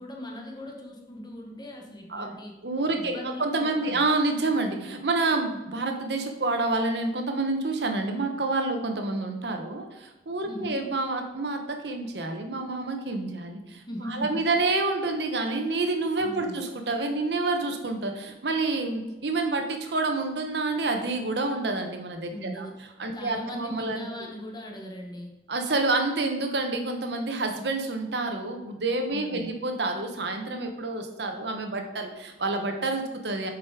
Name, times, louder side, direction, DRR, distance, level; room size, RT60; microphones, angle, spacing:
voice 1, 0.0-2.5 2.9-4.1 10.5-10.8 13.9-14.5 16.2-16.6 22.3-22.8 23.1-25.3 29.1-29.6, equal, 25° left, 0 dB, 1.2 m, -39 dB
voice 2, 2.6-22.7 23.0-24.3 25.5-33.5, right 3 dB, 70° right, 4 dB, 1.1 m, -28 dB
8.0 x 4.9 x 4.9 m, 1.1 s
head